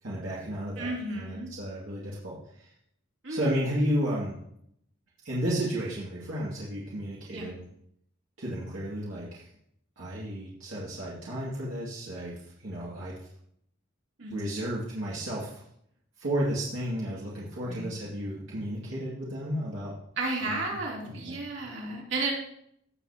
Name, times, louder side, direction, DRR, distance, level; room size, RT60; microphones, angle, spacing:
voice 1, 0.0-2.7 3.3-4.3 5.2-7.6 8.4-9.5 10.0-12.3 12.6-13.1 14.3-15.6 16.2-19.9 20.4-20.8 21.0-21.4, equal, 80° right, -7 dB, 2.3 m, -33 dB
voice 2, 0.8-1.5 3.2-3.5 7.3-7.5 14.2-14.6 17.6-17.9 20.2-22.3, right 2 dB, 65° right, -3 dB, 2.9 m, -33 dB
16.5 x 6.8 x 2.8 m, 0.73 s
head